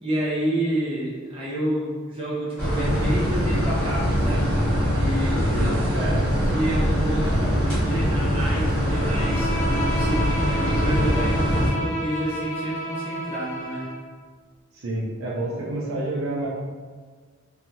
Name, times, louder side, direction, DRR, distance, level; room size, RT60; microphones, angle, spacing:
voice 1, 0.0-4.6 5.0-6.0 6.5-7.3 7.6-9.5 9.9-13.8, right 1 dB, 25° right, -8 dB, 0.7 m, -29 dB
sound 1, 2.6-11.7, equal, 5° left, 1.1 m, -23 dB
voice 2, 5.5-6.3 7.2-7.5 14.7-16.5, right 1 dB, 75° right, -4 dB, 0.6 m, -29 dB
Bowed string instrument, 8.8-14.0, right 1 dB, 40° left, 0.6 m, -31 dB
2.7 x 2.4 x 2.7 m, 1.5 s
head